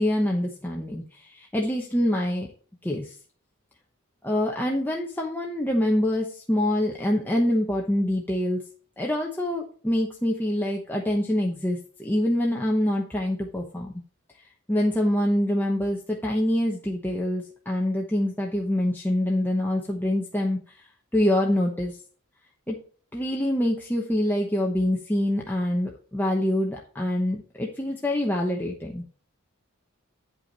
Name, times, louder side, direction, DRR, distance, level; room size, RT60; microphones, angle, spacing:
voice 1, 0.0-2.5 2.8-3.1 4.2-8.6 9.0-14.0 14.7-20.8 21.1-22.0 22.7-22.8 23.1-29.0, left 1 dB, 10° left, -1 dB, 0.9 m, -25 dB
9.1 x 5.7 x 4.1 m, 0.42 s
head